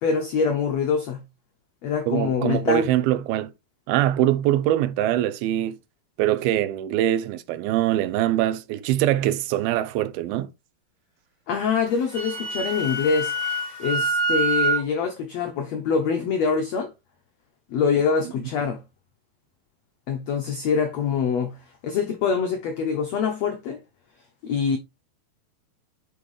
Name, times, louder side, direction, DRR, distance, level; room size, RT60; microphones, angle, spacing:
voice 1, 0.0-1.2 1.8-2.9 11.5-13.3 13.8-16.9 17.7-18.8 20.1-21.6 21.8-23.8 24.4-24.8, left 6 dB, 85° left, 1.4 m, -24 dB
voice 2, 2.1-3.5 3.9-5.8 6.2-10.5, right 13 dB, 85° right, 2.6 m, -23 dB
Wind instrument woodwind instrument, 11.9-14.8, right 3 dB, 10° left, 2.2 m, -25 dB
9.1 x 5.1 x 3.2 m
omnidirectional pair, 4.3 m